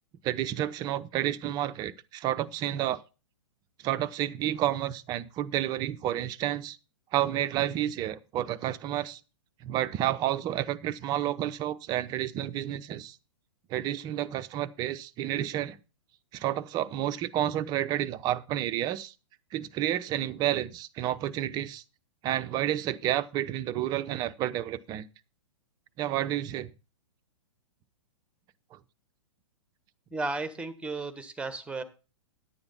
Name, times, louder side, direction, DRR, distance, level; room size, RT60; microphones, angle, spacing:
voice 1, 0.2-3.0 3.8-6.8 7.1-9.2 9.6-13.2 13.7-15.8 16.3-19.1 19.5-21.8 22.2-25.1 26.0-26.7 28.7-28.8, right 12 dB, 25° right, 0.7 m, -30 dB
voice 2, 30.1-31.8, right 3 dB, 5° right, 1.3 m, -34 dB
10.5 x 8.7 x 4.3 m
figure-of-eight pair, 115°, 17 cm